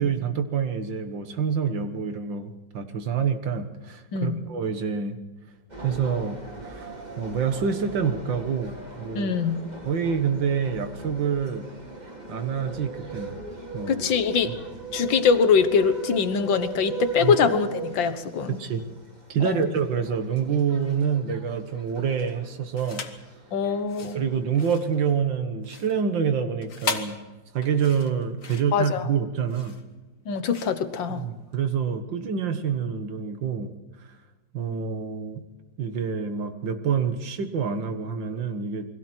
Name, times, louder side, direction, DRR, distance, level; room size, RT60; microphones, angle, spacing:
voice 1, 0.0-5.2 5.8-9.3 9.8-11.7 12.3-13.4 13.7-14.0 17.2-17.3 18.5-18.8 19.3-23.0 24.0-27.2 27.5-29.8 31.1-33.7 34.5-35.4 35.8-38.9, right 7 dB, 80° right, 8 dB, 2.2 m, -27 dB
sound 1, 5.7-25.2, right 4 dB, 25° right, 2.6 m, -39 dB
voice 2, 9.2-9.6 13.9-14.5 14.9-18.6 19.4-19.6 23.5-24.2 28.7-29.1 30.3-31.3, left 6 dB, 85° left, 10 dB, 2.0 m, -23 dB
sound 2, 22.7-23.3 23.8-31.6, left 5 dB, 45° left, 1.8 m, -37 dB
29.0 x 21.0 x 4.5 m, 1.2 s
omnidirectional pair, 2.0 m